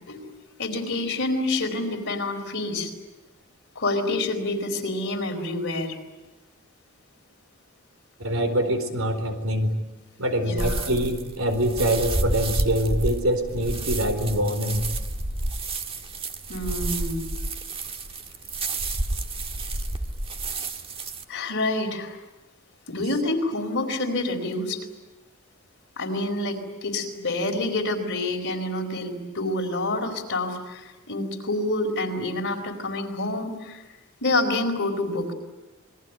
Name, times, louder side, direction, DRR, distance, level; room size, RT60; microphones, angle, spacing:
voice 1, 0.6-2.9 3.7-6.0 10.4-10.9 16.5-17.3 21.3-22.2 22.9-24.8 26.0-33.8 34.2-35.3, left 2 dB, 55° left, 4 dB, 4.5 m, -27 dB
voice 2, 8.2-9.7 10.2-14.8, equal, 70° right, 8 dB, 4.3 m, -24 dB
sound 1, 10.6-21.2, right 2 dB, 25° right, 1.7 m, -30 dB
27.5 x 21.5 x 9.4 m, 1.1 s
head